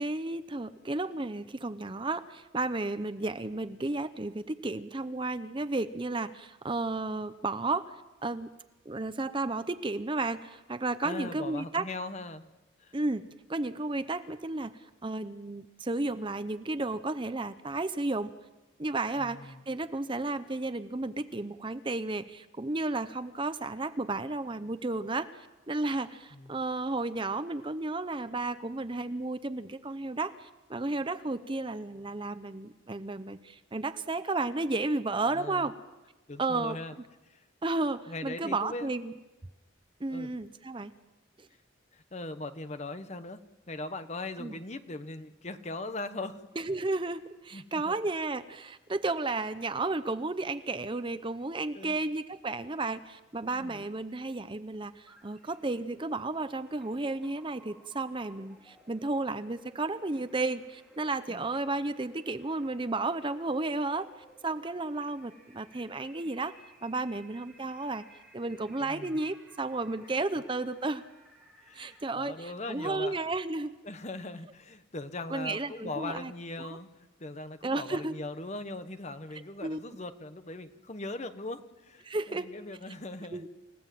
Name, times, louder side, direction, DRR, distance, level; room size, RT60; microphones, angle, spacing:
voice 1, 0.0-7.9 8.2-8.5 8.9-11.8 12.9-14.7 15.0-18.3 18.8-35.7 36.4-36.8 37.6-39.1 40.0-40.9 41.4-41.5 44.4-44.5 46.6-64.1 64.4-66.5 66.8-68.0 68.3-71.0 71.7-73.7 75.3-76.3 76.6-76.7 77.6-78.1 79.3-79.8 82.0-82.5 83.3-83.5, right 2 dB, 25° right, 11 dB, 0.7 m, -33 dB
voice 2, 11.0-12.4 12.8-12.9 19.2-19.6 26.3-26.5 35.3-35.7 36.3-36.9 37.3-37.4 38.1-38.9 40.1-40.3 41.9-43.4 43.7-46.5 47.5-48.0 51.7-52.0 53.4-53.9 61.3-61.5 68.8-69.2 71.6-73.1 73.8-83.5, left 2 dB, 35° left, 10 dB, 1.1 m, -40 dB
sound 1, 55.0-72.0, right 1 dB, ahead, 3.1 m, -58 dB
29.0 x 16.5 x 7.7 m, 1.1 s
head